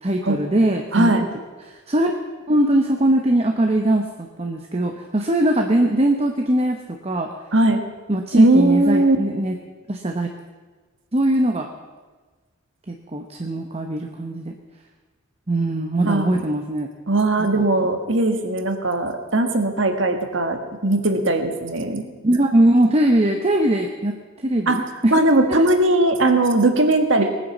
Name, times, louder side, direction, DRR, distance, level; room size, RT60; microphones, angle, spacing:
voice 1, 0.0-1.1 1.6-2.1 2.5-7.3 8.1-9.5 9.9-10.3 11.1-11.7 12.9-14.5 15.5-16.9 17.4-17.7 22.2-24.1 24.4-25.2 27.2-27.3, right 1 dB, 30° right, 4 dB, 0.9 m, -21 dB
voice 2, 0.9-1.3 7.5-7.8 8.3-9.2 16.1-16.4 17.1-22.0 24.7-24.8 25.1-27.2, right 2 dB, 60° right, 6 dB, 1.7 m, -19 dB
20.0 x 9.6 x 7.2 m, 1.3 s
head